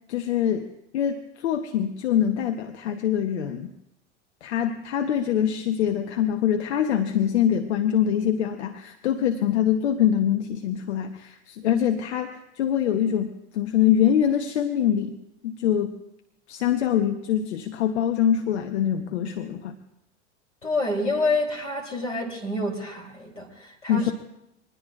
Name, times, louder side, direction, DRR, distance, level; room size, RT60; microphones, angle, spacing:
voice 1, 0.1-0.7 0.9-3.7 4.4-15.2 15.4-16.0 16.5-19.7 23.9-24.1, left 9 dB, 65° left, 8 dB, 0.9 m, -24 dB
voice 2, 20.6-24.1, left 2 dB, 85° left, 1 dB, 3.3 m, -27 dB
24.0 x 20.0 x 2.4 m, 0.86 s
figure-of-eight pair, 75°, 36 cm